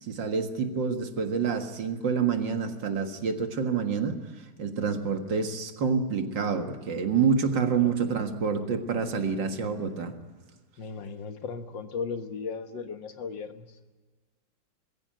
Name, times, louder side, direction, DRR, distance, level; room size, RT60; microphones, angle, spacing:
voice 1, 0.0-10.1, right 5 dB, 80° right, 6 dB, 2.4 m, -28 dB
voice 2, 10.8-13.8, left 5 dB, 85° left, 8 dB, 2.1 m, -36 dB
21.0 x 16.0 x 9.0 m, 1.4 s
omnidirectional pair, 2.0 m